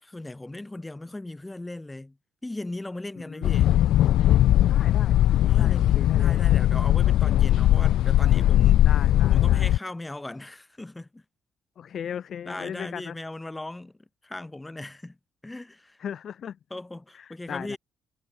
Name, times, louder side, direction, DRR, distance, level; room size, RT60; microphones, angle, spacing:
voice 1, 0.0-2.2 2.4-3.8 5.5-8.8 9.3-11.2 12.5-14.0 14.2-15.2 15.4-16.0 16.7-17.8, left 2 dB, 10° left, 6.0 m, -38 dB
voice 2, 3.2-3.8 4.7-5.2 5.6-6.4 8.8-9.7 11.8-13.2 16.0-16.6 17.1-17.8, left 8 dB, 50° left, 3.9 m, -38 dB
sound 1, 3.4-9.8, left 13 dB, 75° left, 0.4 m, -19 dB
cardioid pair, 145°, 0 cm